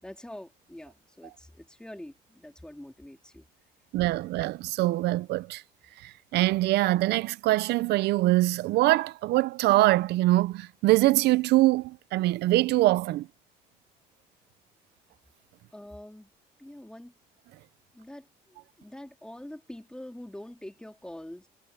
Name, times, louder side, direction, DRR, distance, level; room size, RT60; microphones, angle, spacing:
voice 1, 0.0-3.5 15.7-16.3 16.6-17.1 17.9-21.5, left 1 dB, 5° left, 3.7 m, -45 dB
voice 2, 3.9-5.6 6.0-13.3, right 17 dB, 80° right, 0.6 m, -23 dB
cardioid pair, 110°, 17 cm